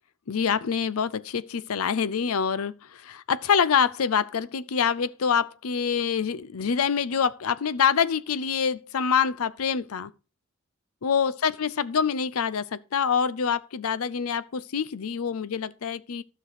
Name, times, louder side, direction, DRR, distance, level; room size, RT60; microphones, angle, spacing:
voice 1, 0.3-10.1 11.0-16.2, left 7 dB, 90° left, 0.5 m, -26 dB
12.5 x 6.0 x 4.9 m
head